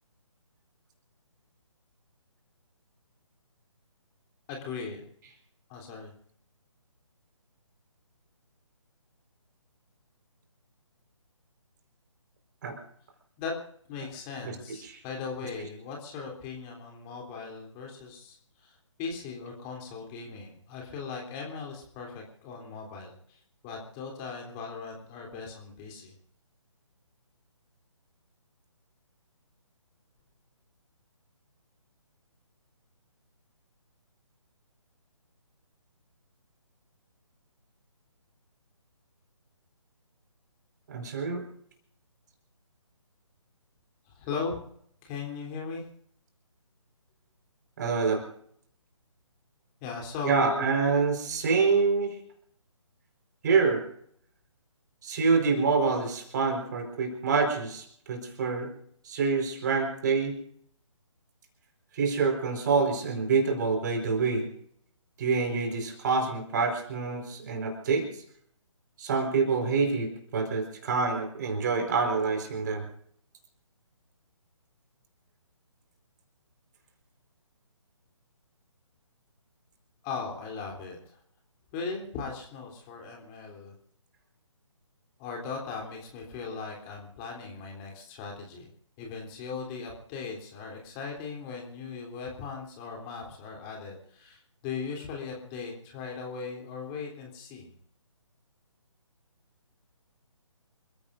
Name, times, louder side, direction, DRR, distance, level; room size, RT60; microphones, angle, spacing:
voice 1, 4.5-5.1 5.7-6.1 13.4-13.5 13.9-26.1 44.1-44.6 45.0-45.8 49.8-50.7 80.0-81.2 81.7-83.7 85.2-88.7 89.0-97.7, left 5 dB, 20° left, 0 dB, 3.3 m, -38 dB
voice 2, 40.9-41.4 47.8-48.2 50.2-52.1 53.4-53.8 55.0-58.7 59.0-60.3 61.9-64.5 65.2-68.1 69.0-72.8, right 4 dB, 35° right, 4 dB, 4.5 m, -26 dB
28.5 x 16.0 x 2.6 m, 0.66 s
figure-of-eight pair, 140°, 17 cm